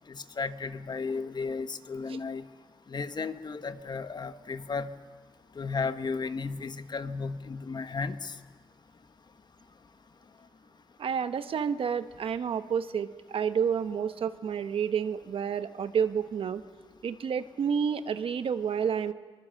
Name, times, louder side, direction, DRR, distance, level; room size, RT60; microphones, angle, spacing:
voice 1, 0.1-2.4 2.9-4.9 5.6-8.3, left 4 dB, 50° left, 10 dB, 1.1 m, -34 dB
voice 2, 11.0-16.6 17.0-19.1, right 7 dB, 75° right, 10 dB, 1.0 m, -30 dB
23.5 x 21.0 x 7.6 m, 1.4 s
cardioid pair, 60°, 9 cm